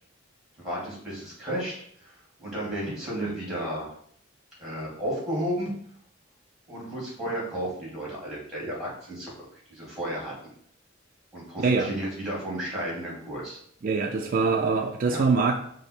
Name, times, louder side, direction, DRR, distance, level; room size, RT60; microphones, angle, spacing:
voice 1, 0.6-1.7 2.0-3.9 4.6-5.7 6.7-10.3 11.3-13.6 14.4-14.5 15.1-15.2, right 1 dB, ahead, -5 dB, 1.9 m, -33 dB
voice 2, 11.6-11.9 13.8-15.6, right 4 dB, 40° right, 2 dB, 0.3 m, -23 dB
5.3 x 2.0 x 4.3 m, 0.64 s
head